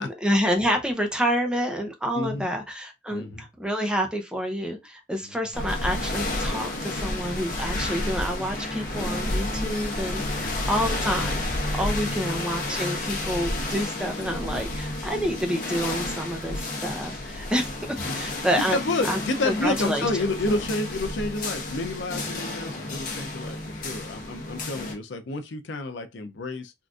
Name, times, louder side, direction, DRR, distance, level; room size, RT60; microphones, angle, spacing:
voice 1, 0.0-11.4 11.8-18.8 19.1-20.1, equal, 5° right, 0.6 m, -28 dB
voice 2, 2.1-2.5 3.1-3.4 10.4-10.6 12.1-12.3 18.0-18.2 18.7-26.7, left 2 dB, 80° left, 0.5 m, -30 dB
sound 1, 5.5-24.9, left 1 dB, 50° left, 0.9 m, -31 dB
3.6 x 2.5 x 2.4 m
head